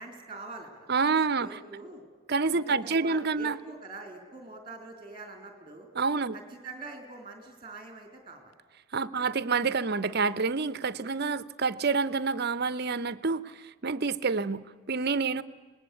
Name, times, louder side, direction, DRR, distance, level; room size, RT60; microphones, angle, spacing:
voice 1, 0.0-0.9 1.4-2.0 2.5-5.9 6.3-8.5 9.1-9.3, right 3 dB, 20° right, 5 dB, 3.6 m, -44 dB
voice 2, 0.9-1.6 2.3-3.6 6.0-6.3 8.9-15.4, right 4 dB, 45° right, 16 dB, 0.7 m, -28 dB
26.0 x 20.0 x 8.3 m, 1.5 s
head